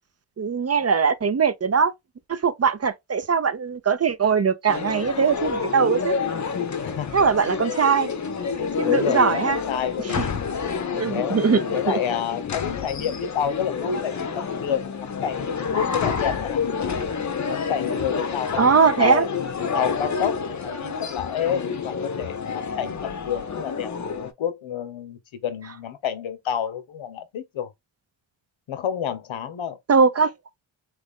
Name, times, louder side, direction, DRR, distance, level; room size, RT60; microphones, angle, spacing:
voice 1, 0.4-1.9 2.3-6.1 7.1-8.1 8.8-9.6 10.9-11.6 18.6-19.3 29.9-30.3, right 6 dB, 35° right, 0.5 m, -20 dB
sound 1, 4.7-24.3, left 5 dB, 35° left, 0.7 m, -28 dB
voice 2, 6.8-7.2 8.8-10.3 10.9-11.4 11.7-16.6 17.4-19.3 19.7-23.9 24.2-27.7 28.7-29.8, left 9 dB, 75° left, 0.8 m, -29 dB
3.1 x 2.5 x 3.4 m
cardioid pair, 55°, 48 cm